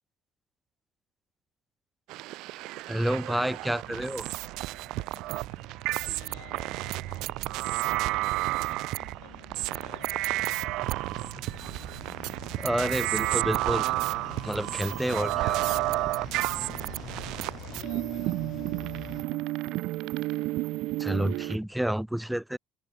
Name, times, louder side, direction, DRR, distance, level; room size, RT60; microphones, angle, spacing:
sound 1, 2.1-21.6, right 19 dB, 60° right, 0.5 m, -31 dB
voice 1, 2.9-4.3 12.6-13.9 14.4-15.6 21.0-22.6, right 1 dB, ahead, 0.4 m, -29 dB
sound 2, 3.6-19.2, left 10 dB, 40° left, 1.4 m, -47 dB
sound 3, 5.0-21.7, left 17 dB, 55° left, 4.7 m, -58 dB
voice 2, 5.9-10.3 16.4-17.1 17.6-19.1, left 36 dB, 90° left, 1.8 m, -55 dB
open air
cardioid pair, 165°, 0 cm